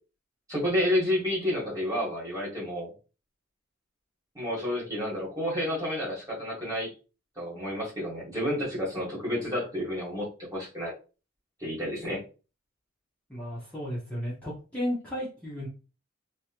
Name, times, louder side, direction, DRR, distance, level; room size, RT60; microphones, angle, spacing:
voice 1, 0.5-2.9 4.3-6.9 7.4-10.9 11.6-12.2, left 1 dB, 15° right, -5 dB, 1.7 m, -30 dB
voice 2, 13.3-15.7, equal, 5° left, -9 dB, 1.1 m, -34 dB
3.1 x 3.0 x 2.9 m, 0.33 s
head